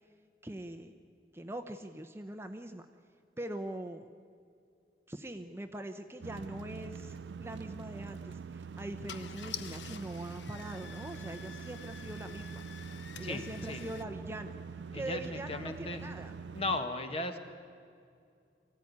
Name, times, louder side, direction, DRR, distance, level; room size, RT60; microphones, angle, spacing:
voice 1, 0.4-0.9 1.3-2.9 3.4-4.1 5.1-12.6 12.9-14.6 14.9-16.3, right 1 dB, 15° right, 7 dB, 0.8 m, -42 dB
sound 1, 6.2-16.8, right 5 dB, 80° right, 0.5 m, -44 dB
Car / Engine starting, 8.0-8.2 8.8-8.9 9.1-14.0, left 8 dB, 80° left, 1.0 m, -48 dB
voice 2, 14.9-16.0 16.5-17.4, left 2 dB, 35° left, 7 dB, 1.6 m, -36 dB
24.0 x 15.5 x 9.6 m, 2.4 s
head